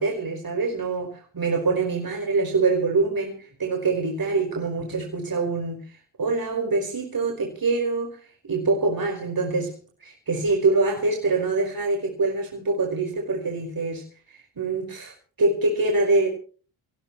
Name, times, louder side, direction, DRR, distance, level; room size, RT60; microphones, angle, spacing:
voice 1, 0.0-5.8 6.2-8.2 8.4-9.7 10.0-16.3, right 3 dB, 45° right, 5.3 m, -25 dB
24.0 x 17.5 x 3.2 m
supercardioid pair, 55°, 49 cm